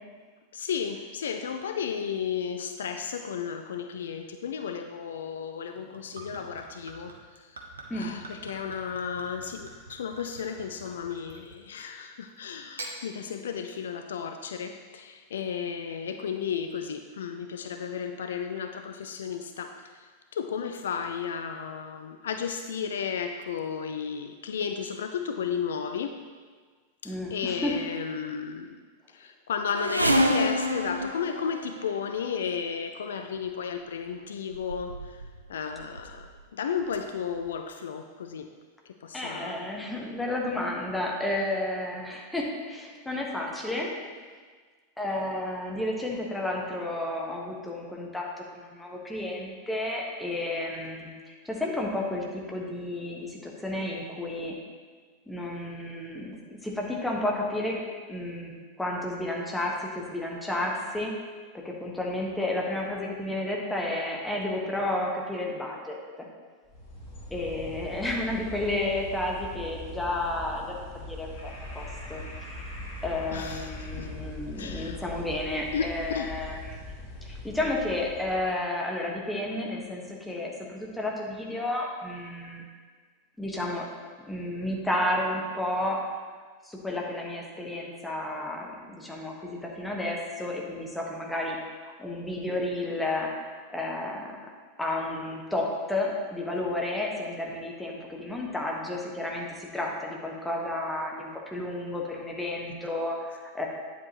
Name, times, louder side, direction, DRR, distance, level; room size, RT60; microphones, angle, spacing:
voice 1, 0.5-7.6 7.9-26.2 27.0-28.8 29.1-38.5 38.9-39.6 73.3-74.1 74.5-75.0 75.7-76.3, left 7 dB, 65° left, 7 dB, 0.4 m, -34 dB
Gurgling / Chink clink / Liquid, 5.8-11.9 12.6-13.0, right 3 dB, 70° right, 1.0 m, -45 dB
voice 2, 27.0-27.7 39.1-43.9 45.0-54.6 55.3-57.8 58.1-61.1 61.5-66.3 67.3-70.7 71.0-72.2 73.0-76.8 77.2-82.6 83.4-83.9 84.3-86.0 86.6-91.6 91.8-93.3 93.7-94.3 94.8-103.7, left 1 dB, 5° left, -2 dB, 1.4 m, -32 dB
sound 1, 29.7-32.2 33.2-33.4 34.2-34.3 34.5-35.4 35.7-36.3 37.0-37.1 37.4-37.5, equal, 85° right, 0.5 m, -28 dB
sound 2, 66.7-78.6, left 1 dB, 45° left, 2.6 m, -41 dB
9.4 x 8.0 x 3.0 m, 1.5 s
figure-of-eight pair, 90°, 0 cm